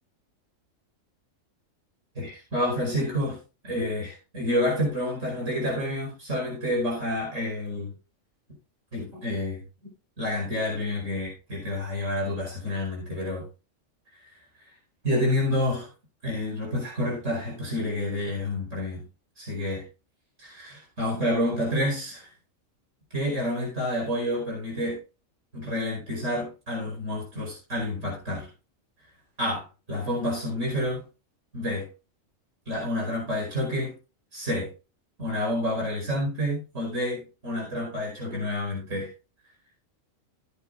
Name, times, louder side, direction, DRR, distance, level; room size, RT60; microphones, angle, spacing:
voice 1, 2.2-3.4 3.6-7.9 8.9-9.6 10.2-13.5 15.0-15.9 16.2-19.0 19.4-19.8 20.4-22.3 23.1-25.0 25.5-28.5 29.4-29.6 29.9-31.0 31.5-31.9 32.7-33.9 34.3-34.7 35.2-39.1, left 1 dB, 70° right, -2 dB, 5.5 m, -29 dB
16.5 x 8.6 x 2.6 m, 0.31 s
omnidirectional pair, 1.3 m